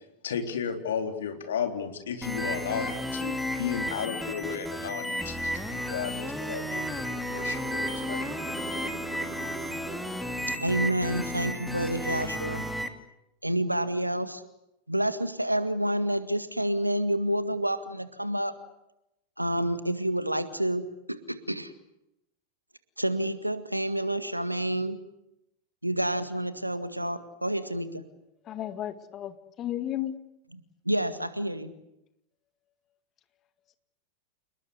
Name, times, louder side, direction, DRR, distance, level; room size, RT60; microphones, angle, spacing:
voice 1, 0.2-8.4, left 7 dB, 65° left, 5 dB, 3.8 m, -34 dB
sound 1, 2.2-12.9, equal, ahead, 2.6 m, -33 dB
Motor vehicle (road) / Siren, 7.3-11.4, right 5 dB, 30° right, 3.8 m, -43 dB
voice 2, 10.3-12.6 13.4-14.4 14.9-18.5 19.4-20.8 21.3-21.7 23.0-25.0 25.8-28.0 30.9-31.7, right 1 dB, 85° right, 11 dB, 1.9 m, -29 dB
voice 3, 28.5-30.1, left 12 dB, 30° left, 11 dB, 2.0 m, -33 dB
29.0 x 20.0 x 8.2 m, 0.86 s
figure-of-eight pair, 90°, 0 cm